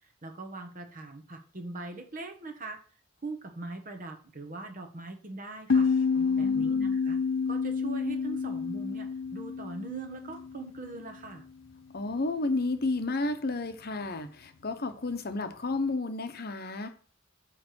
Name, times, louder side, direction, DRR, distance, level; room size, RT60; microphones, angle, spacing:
voice 1, 0.2-2.8 3.2-5.9 6.3-7.2 7.5-11.5, right 3 dB, 45° right, 5 dB, 1.2 m, -41 dB
sound 1, 5.7-11.0, left 5 dB, 80° left, 0.6 m, -29 dB
voice 2, 6.2-6.9 11.9-16.9, left 2 dB, 50° left, 8 dB, 0.9 m, -32 dB
8.8 x 3.4 x 6.1 m, 0.41 s
head